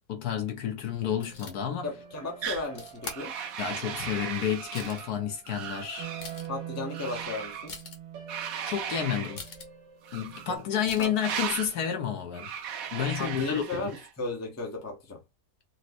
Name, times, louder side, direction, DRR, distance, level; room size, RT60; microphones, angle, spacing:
voice 1, 0.1-1.9 3.6-6.1 8.6-9.4 10.1-12.5 12.9-13.9, left 8 dB, 70° left, 1.1 m, -30 dB
sound 1, 1.0-10.6, right 10 dB, 85° right, 1.5 m, -45 dB
sound 2, 1.2-1.5 2.7-3.2 4.1-4.2 4.6-5.1 5.7-5.8 6.0-6.6 7.7-8.0 9.3-9.7 10.8-11.1, left 4 dB, 90° left, 0.4 m, -42 dB
voice 2, 1.8-3.3 6.5-7.8 10.5-10.7 11.0-11.1 13.2-15.2, left 3 dB, 15° left, 0.5 m, -35 dB
sound 3, 2.4-2.7 3.0-5.1 5.4-6.3 6.9-7.7 8.3-9.4 10.0-10.6 11.1-11.7 12.3-14.1, right 8 dB, 65° right, 1.0 m, -37 dB
4.2 x 2.0 x 2.5 m
omnidirectional pair, 1.9 m